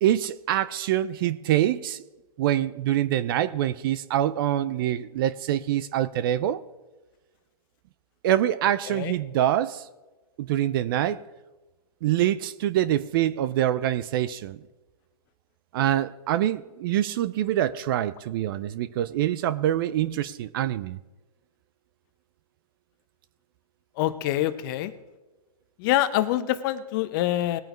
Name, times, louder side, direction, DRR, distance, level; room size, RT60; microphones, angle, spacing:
voice 1, 0.0-2.0 2.4-6.6 8.2-9.9 10.4-11.3 12.0-14.6 15.7-21.0, right 12 dB, 35° right, 15 dB, 0.4 m, -25 dB
voice 2, 24.0-24.9 25.8-27.6, left 14 dB, 35° left, 12 dB, 0.8 m, -25 dB
20.5 x 8.9 x 3.1 m, 1.2 s
hypercardioid pair, 135°, 20 cm